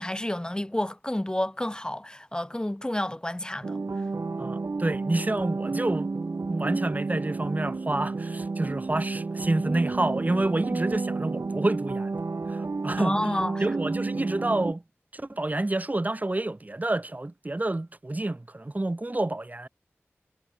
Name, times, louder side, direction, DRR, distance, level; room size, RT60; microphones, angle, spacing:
voice 1, 0.0-3.8 13.0-13.6, left 1 dB, 15° left, 3.9 m, -30 dB
sound 1, 3.6-14.7, right 3 dB, 70° right, 2.0 m, -31 dB
voice 2, 4.4-6.1 6.5-12.2 12.5-13.2 13.6-14.8 15.1-19.7, right 2 dB, 35° right, 2.7 m, -28 dB
wide cardioid pair, 60°, 5 cm